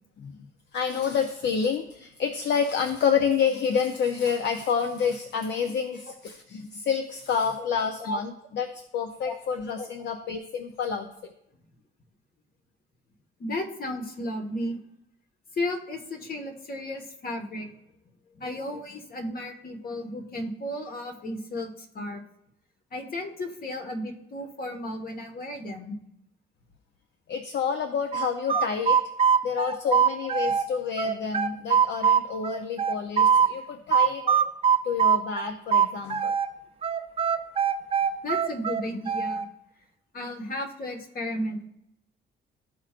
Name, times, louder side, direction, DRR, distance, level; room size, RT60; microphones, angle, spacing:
voice 1, 0.7-11.3 27.3-29.0 29.4-34.3 34.8-36.3, left 6 dB, 65° left, 6 dB, 0.7 m, -28 dB
voice 2, 9.2-9.9 13.4-14.8 15.5-17.7 18.3-22.2 22.9-26.0 29.9-30.0 34.2-34.5 38.2-39.5 40.1-41.7, left 1 dB, 50° left, 4 dB, 1.5 m, -34 dB
sound 1, 28.1-30.7 31.0-33.5 33.9-36.5 36.8-39.4, right 7 dB, 30° right, 0.5 m, -22 dB
13.5 x 4.5 x 2.5 m, 0.78 s
cardioid pair, 90°, 20 cm